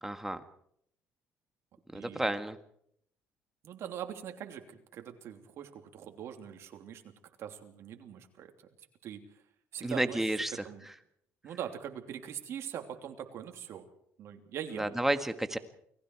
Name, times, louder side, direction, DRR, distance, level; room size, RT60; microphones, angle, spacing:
voice 1, 0.0-0.4 1.9-2.6 9.8-10.5 14.8-15.6, right 1 dB, 5° right, 9 dB, 1.8 m, -31 dB
voice 2, 1.9-2.4 3.6-7.0 7.4-8.5 9.0-9.2 9.7-10.3 10.6-10.9 11.4-13.9 14.2-15.0, right 9 dB, 65° right, 5 dB, 3.1 m, -42 dB
29.0 x 19.5 x 4.8 m, 0.70 s
cardioid pair, 95°, 5 cm